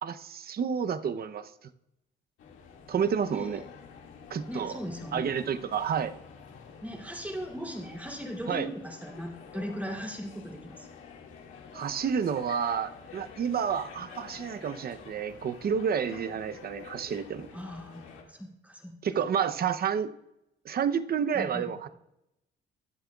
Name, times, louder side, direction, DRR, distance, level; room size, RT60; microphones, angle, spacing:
voice 1, 0.0-1.5 2.9-3.6 4.3-4.8 5.1-6.1 8.5-8.7 11.7-17.5 19.0-20.1 20.6-21.9, right 7 dB, 50° right, 11 dB, 0.7 m, -30 dB
sound 1, 2.4-18.2, left 6 dB, 90° left, 2.1 m, -49 dB
voice 2, 3.3-3.6 4.5-5.3 6.8-10.9 17.5-19.0 21.3-21.7, equal, 5° right, 1 dB, 3.1 m, -38 dB
23.0 x 7.7 x 2.4 m, 0.85 s
cardioid pair, 90°, 20 cm